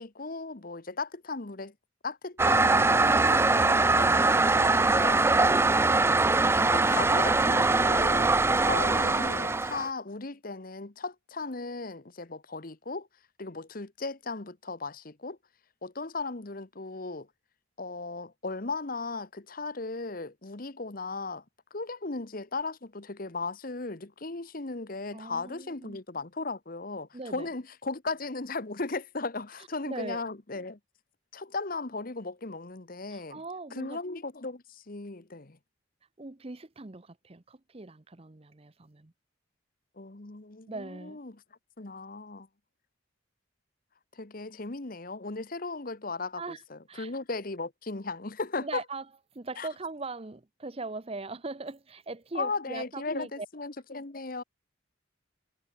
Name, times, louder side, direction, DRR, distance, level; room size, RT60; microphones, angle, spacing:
voice 1, 0.0-1.7 2.0-5.3 6.7-8.3 8.6-13.1 13.4-15.4 15.8-17.3 17.8-21.4 21.7-30.8 31.3-33.4 33.7-35.6 40.0-41.4 41.8-42.5 44.1-46.4 46.7-48.8 49.6-49.7 52.3-54.4, left 3 dB, 45° left, 1.2 m, -36 dB
Toilet flush, 2.4-9.9, right 3 dB, 10° right, 0.4 m, -22 dB
voice 2, 25.1-26.0 27.1-27.5 29.6-30.2 33.1-34.0 36.2-39.1 40.7-41.2 46.4-47.1 48.6-49.1 49.3-53.5, right 3 dB, 30° right, 0.8 m, -40 dB
head